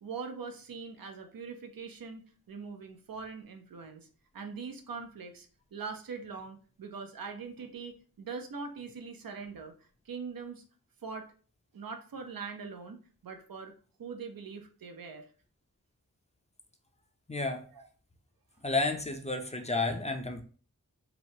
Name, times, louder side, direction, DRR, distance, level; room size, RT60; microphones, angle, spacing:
voice 1, 0.0-4.1 4.3-9.7 10.1-10.6 11.0-11.3 11.7-13.7 14.0-15.3 17.7-17.9, right 5 dB, 90° right, 5 dB, 0.5 m, -42 dB
voice 2, 17.3-17.6 18.6-20.4, left 3 dB, 20° left, 4 dB, 0.4 m, -31 dB
3.0 x 2.1 x 2.7 m, 0.40 s
wide cardioid pair, 45°, 34 cm